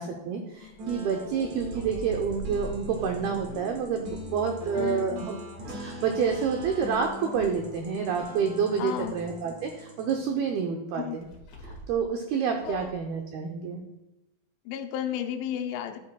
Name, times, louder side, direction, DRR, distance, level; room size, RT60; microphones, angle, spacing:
voice 1, 0.0-5.4 5.7-11.3 11.9-13.8, right 6 dB, 90° right, 3 dB, 2.2 m, -28 dB
sound 1, 0.5-4.6 5.6-7.9 11.2-12.1 12.5-13.0, right 1 dB, 55° left, 2.2 m, -44 dB
sound 2, 0.8-10.2, equal, 55° right, 2.2 m, -41 dB
voice 2, 4.7-5.3 8.8-9.1 10.9-11.2 12.7-12.9 14.7-16.0, left 10 dB, 85° left, 6 dB, 3.2 m, -33 dB
12.0 x 8.9 x 2.3 m, 1.0 s
omnidirectional pair, 5.4 m